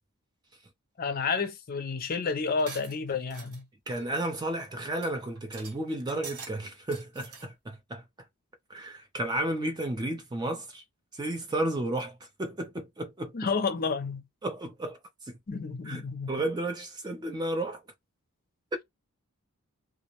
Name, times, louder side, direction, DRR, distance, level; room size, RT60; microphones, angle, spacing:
voice 1, 1.0-3.6 13.3-14.2 15.5-16.3, left 4 dB, 40° left, 0.5 m, -30 dB
sound 1, 2.6-3.6 3.9-4.1 4.5-4.6 5.0-5.1 5.4-5.8 6.1-6.5 6.8-7.4, right 4 dB, 75° right, 0.9 m, -44 dB
voice 2, 3.9-8.0 8.7-10.8 11.1-13.3 14.4-15.0 15.2-15.4 15.9-16.0 16.3-17.8 18.7-18.8, right 1 dB, 20° right, 0.4 m, -32 dB
2.4 x 2.0 x 2.9 m
head